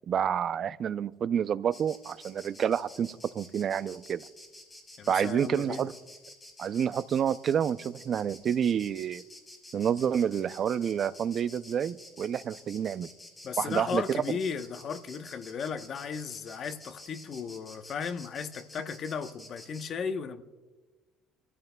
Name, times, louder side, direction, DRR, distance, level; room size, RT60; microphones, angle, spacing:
voice 1, 0.1-4.2 5.1-5.9 6.6-9.2 9.7-13.1 13.6-14.0, right 8 dB, 45° right, 0.4 m, -29 dB
Insect, 1.7-19.9, left 1 dB, 15° left, 3.8 m, -50 dB
voice 2, 5.0-5.9 13.4-20.4, left 6 dB, 45° left, 0.9 m, -35 dB
26.0 x 14.5 x 2.3 m
cardioid pair, 125°, 0 cm